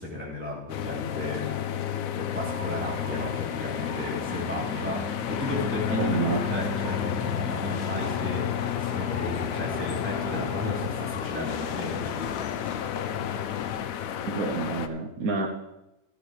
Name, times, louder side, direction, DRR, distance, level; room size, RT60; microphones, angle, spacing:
voice 1, 0.0-1.9 2.2-8.5 8.8-12.6, left 1 dB, 10° right, -5 dB, 3.3 m, -34 dB
sound 1, 0.7-14.9, left 9 dB, 75° left, 1.1 m, -32 dB
sound 2, 2.4-10.9, right 6 dB, 60° right, 1.6 m, -43 dB
sound 3, 5.2-13.9, left 8 dB, 60° left, 0.7 m, -35 dB
voice 2, 5.9-6.4 14.3-15.5, right 4 dB, 80° right, 3 dB, 1.5 m, -28 dB
13.5 x 13.5 x 3.3 m, 0.93 s
omnidirectional pair, 1.5 m